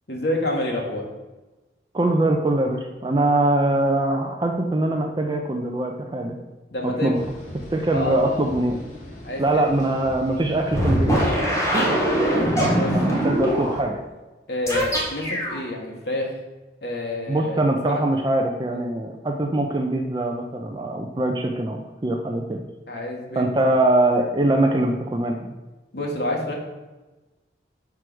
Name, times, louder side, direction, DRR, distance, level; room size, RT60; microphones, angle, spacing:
voice 1, 0.1-1.1 6.7-7.1 7.9-8.4 9.2-9.6 10.0-10.1 11.8-12.1 12.6-13.0 14.5-16.3 16.8-18.0 22.9-23.7 25.9-26.5, left 1 dB, 65° left, -1 dB, 1.5 m, -28 dB
voice 2, 1.9-6.3 7.0-7.2 7.7-8.8 9.4-11.1 12.9-14.0 17.3-22.6 23.4-25.5, right 1 dB, 25° right, 3 dB, 0.5 m, -22 dB
sound 1, 7.1-13.8, left 1 dB, 45° left, 1.8 m, -40 dB
sound 2, 10.7-13.8 14.7-15.6, equal, 15° left, 1.5 m, -22 dB
4.8 x 4.8 x 6.1 m, 1.1 s
head